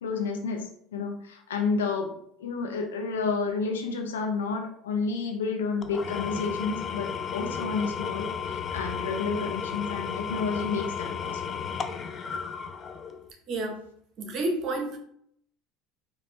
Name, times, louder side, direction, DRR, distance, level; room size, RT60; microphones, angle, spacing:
voice 1, 0.0-2.1 2.4-11.6, left 4 dB, 90° left, 3 dB, 0.6 m, -30 dB
Engine / Tools, 5.8-13.3, left 7 dB, 35° left, 0.4 m, -34 dB
voice 2, 13.5-13.8 14.2-15.0, right 2 dB, 50° right, 5 dB, 0.9 m, -30 dB
4.6 x 2.6 x 3.3 m, 0.68 s
hypercardioid pair, 80°, 0 cm